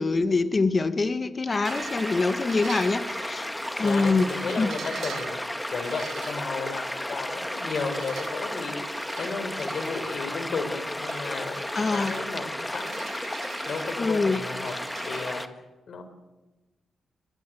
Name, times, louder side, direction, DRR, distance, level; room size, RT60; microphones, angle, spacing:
voice 1, 0.0-3.5 3.8-4.3 4.6-4.7 11.7-12.1 14.0-14.4, left 3 dB, 40° left, 11 dB, 1.8 m, -24 dB
sound 1, 1.5-15.3, right 7 dB, 80° right, 2.3 m, -44 dB
sound 2, 1.7-15.5, left 1 dB, 10° left, 1.8 m, -33 dB
voice 2, 3.8-12.9 13.7-14.7 15.0-15.6 15.9-16.0, left 4 dB, 65° left, 8 dB, 5.0 m, -34 dB
21.5 x 21.5 x 8.0 m, 1.1 s
cardioid pair, 70°, 0 cm